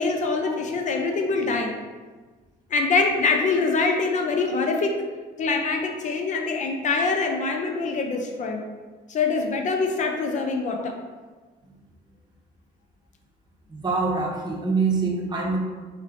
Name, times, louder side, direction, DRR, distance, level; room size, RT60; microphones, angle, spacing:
voice 1, 0.0-1.7 2.7-5.0 5.4-8.6 9.1-10.9, left 4 dB, 45° left, 3 dB, 0.6 m, -24 dB
voice 2, 13.7-15.6, right 4 dB, 25° right, -1 dB, 1.0 m, -25 dB
4.3 x 3.2 x 3.8 m, 1.4 s
cardioid pair, 110°, 17 cm